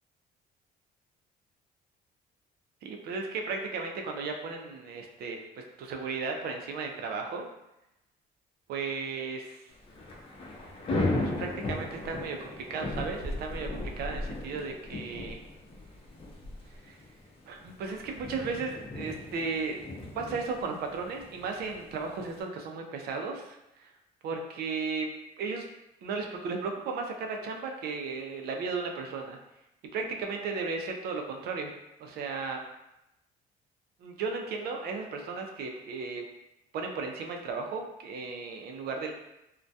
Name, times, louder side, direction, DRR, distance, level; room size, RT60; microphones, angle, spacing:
voice 1, 2.8-7.4 8.7-9.7 11.4-15.4 16.8-17.0 17.5-19.8 20.2-23.9 24.2-25.1 25.4-25.7 26.0-29.4 29.9-31.7 32.0-32.6 34.0-36.2 36.7-39.1, right 4 dB, 70° right, 2 dB, 0.4 m, -35 dB
Thunder / Rain, 9.7-22.4, left 2 dB, 35° left, 0.5 m, -37 dB
2.2 x 2.2 x 2.6 m, 0.88 s
cardioid pair, 100°, 17 cm